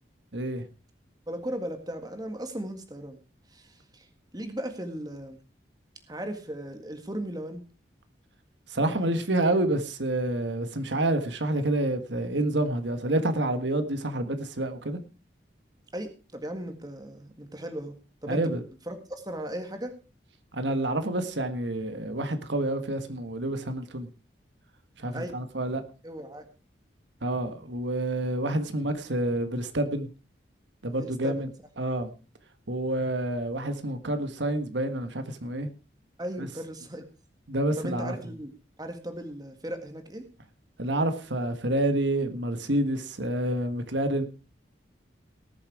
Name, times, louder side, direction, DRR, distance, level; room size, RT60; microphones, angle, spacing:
voice 1, 0.3-0.6 8.7-15.0 18.3-18.6 20.5-24.1 25.0-25.8 27.2-30.1 30.8-31.5 31.8-32.1 32.7-35.7 36.4-36.5 37.5-38.1 40.8-44.3, right 1 dB, 80° right, 9 dB, 1.5 m, -28 dB
voice 2, 1.3-3.2 3.5-4.1 4.3-5.4 6.1-7.6 15.9-17.9 18.2-18.6 18.8-19.9 25.1-25.4 26.0-26.5 30.9-31.5 36.2-37.1 37.8-40.3, right 1 dB, 20° right, 7 dB, 1.7 m, -37 dB
19.0 x 7.4 x 4.8 m, 0.34 s
head